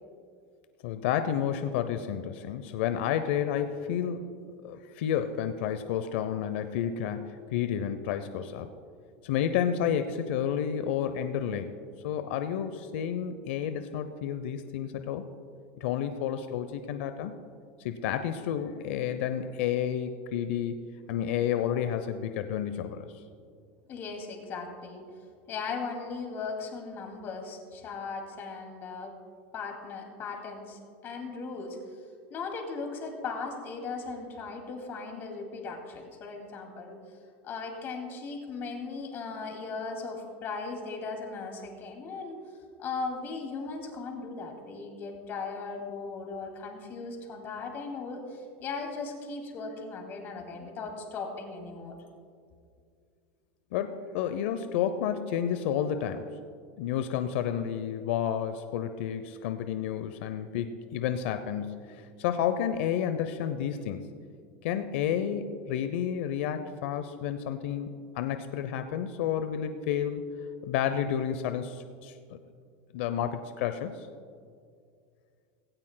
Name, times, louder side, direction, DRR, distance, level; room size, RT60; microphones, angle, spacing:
voice 1, 0.8-4.4 4.6-8.7 9.2-11.7 12.0-15.2 15.8-17.3 17.8-20.8 21.1-23.1 53.7-56.3 56.8-64.1 64.6-67.9 68.1-70.3 70.6-72.4 72.9-74.1, left 9 dB, 70° left, 9 dB, 0.6 m, -30 dB
voice 2, 23.9-25.0 25.5-29.1 29.5-31.8 32.3-37.0 37.4-42.4 42.8-51.9, left 4 dB, 35° left, 2 dB, 2.4 m, -38 dB
16.5 x 16.5 x 2.2 m, 2.3 s
supercardioid pair, 140°, 6 cm